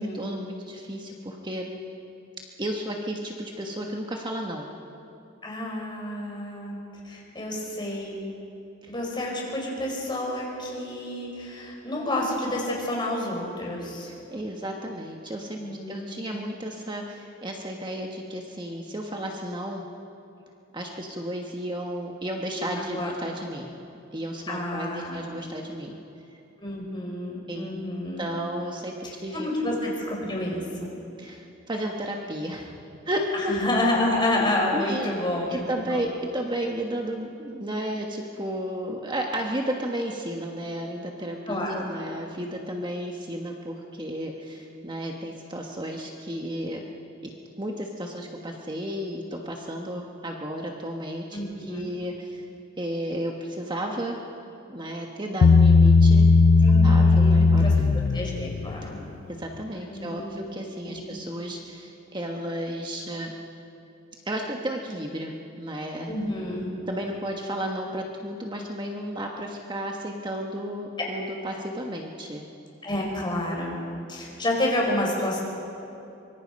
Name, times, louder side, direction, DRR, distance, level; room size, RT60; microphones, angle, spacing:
voice 1, 0.1-1.7 2.6-4.7 8.8-8.9 14.1-19.8 20.7-23.7 24.1-25.9 26.3-26.4 27.5-27.7 28.2-28.9 29.2-29.5 31.2-32.7 33.0-33.5 34.4-35.1 35.5-46.8 47.2-47.3 47.6-52.5 52.8-54.2 54.7-56.3 56.8-57.7 59.3-63.3 64.2-66.1 66.9-72.5, right 1 dB, 25° right, 1 dB, 1.3 m, -33 dB
voice 2, 5.4-8.2 8.9-14.1 15.6-16.2 22.6-23.1 24.5-25.2 26.6-28.2 29.0-30.9 33.3-35.6 35.9-36.0 41.5-41.8 51.3-51.9 56.6-57.7 58.1-59.0 59.9-60.4 60.9-61.1 66.1-66.7 72.8-73.8 74.1-75.4, left 1 dB, 25° left, -2 dB, 5.2 m, -29 dB
Bass guitar, 55.4-58.8, left 4 dB, 70° left, 0.4 m, -17 dB
24.5 x 23.5 x 5.3 m, 2.8 s
head